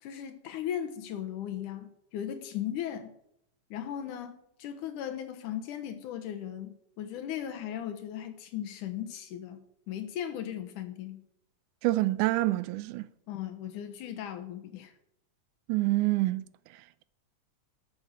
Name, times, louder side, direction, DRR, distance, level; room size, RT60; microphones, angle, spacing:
voice 1, 0.0-3.1 3.7-11.3 13.3-14.9, left 10 dB, 80° left, 2.6 m, -37 dB
voice 2, 11.8-13.0 15.7-16.4, right 18 dB, 85° right, 2.1 m, -26 dB
12.0 x 6.7 x 6.3 m
omnidirectional pair, 3.6 m